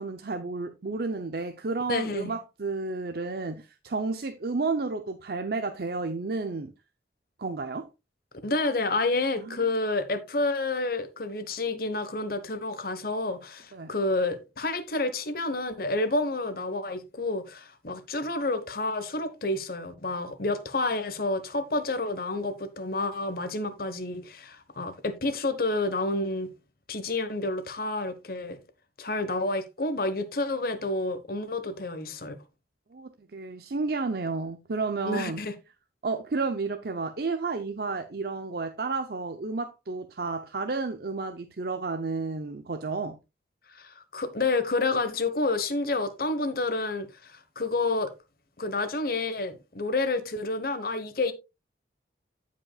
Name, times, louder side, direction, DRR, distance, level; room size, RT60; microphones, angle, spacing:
voice 1, 0.0-6.7 7.4-7.9 9.4-9.6 13.7-13.9 32.9-35.4 36.0-43.2, right 3 dB, 60° right, 0.7 m, -31 dB
voice 2, 1.9-2.3 8.4-26.5 26.9-28.6 29.0-32.4 35.0-35.5 43.7-48.1 48.6-51.3, left 2 dB, 55° left, 1.2 m, -29 dB
15.0 x 5.2 x 2.3 m
head